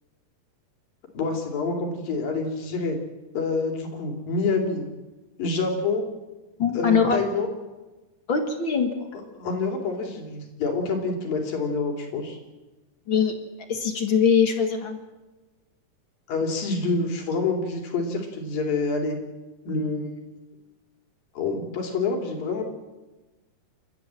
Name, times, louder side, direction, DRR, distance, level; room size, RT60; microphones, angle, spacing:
voice 1, 1.1-3.0 3.3-4.8 5.4-6.0 6.7-7.5 9.1-12.4 16.3-19.2 19.6-20.1 21.4-22.6, left 3 dB, 65° left, 3 dB, 4.6 m, -27 dB
voice 2, 6.6-7.2 8.3-9.0 13.1-13.3 13.7-15.0, left 6 dB, 45° left, 5 dB, 1.7 m, -22 dB
29.0 x 13.0 x 7.6 m, 1.1 s
omnidirectional pair, 4.4 m